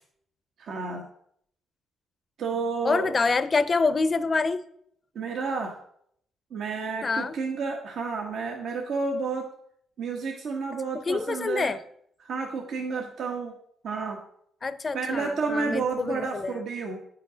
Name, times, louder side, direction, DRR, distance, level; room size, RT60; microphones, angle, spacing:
voice 1, 0.6-1.1 2.4-3.1 5.1-5.8 6.5-9.5 10.0-11.7 12.2-13.5 13.8-14.2 14.9-17.0, right 4 dB, 70° right, 1 dB, 1.2 m, -30 dB
voice 2, 2.8-4.6 7.0-7.3 11.0-11.8 14.6-16.6, left 4 dB, 35° left, 14 dB, 0.6 m, -26 dB
9.4 x 5.6 x 5.0 m, 0.68 s
cardioid pair, 90°, 0 cm